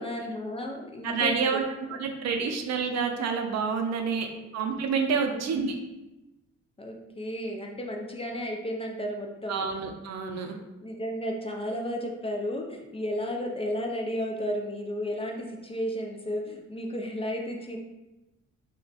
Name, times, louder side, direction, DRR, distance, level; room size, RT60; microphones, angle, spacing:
voice 1, 0.0-1.6 1.9-2.0 2.4-2.5 4.1-4.5 5.2-5.4 6.8-9.7 10.8-17.8, equal, 20° left, 1 dB, 0.4 m, -33 dB
voice 2, 1.0-4.3 4.5-5.8 9.5-10.5, right 5 dB, 60° right, 4 dB, 0.5 m, -28 dB
2.3 x 2.2 x 3.9 m, 1.0 s
cardioid pair, 90°, 30 cm